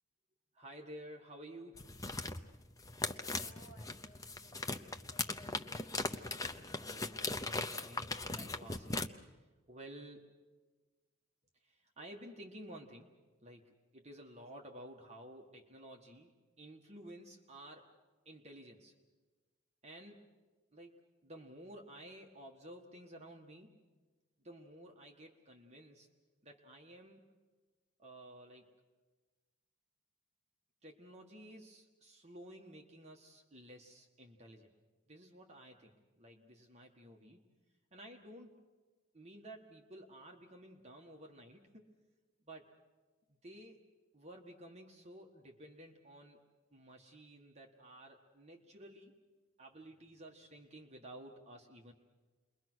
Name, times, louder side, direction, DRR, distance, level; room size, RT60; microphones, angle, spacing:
voice 1, 0.5-2.0 6.7-10.4 11.6-13.1 13.4-16.3 16.6-17.9 18.2-18.9 19.8-20.3 20.7-23.7 24.4-26.1 26.4-27.2 28.0-28.7 30.8-34.7 35.1-37.4 37.9-38.6 39.1-41.9 42.4-42.7 43.3-43.8 44.1-46.4 46.7-49.2 49.6-51.9, right 1 dB, 30° right, 2 dB, 1.6 m, -53 dB
sound 1, 1.7-9.1, left 2 dB, 15° left, 0.7 m, -39 dB
voice 2, 3.1-5.9, right 1 dB, 35° left, -1 dB, 7.8 m, -62 dB
29.5 x 22.5 x 6.3 m, 1.3 s
head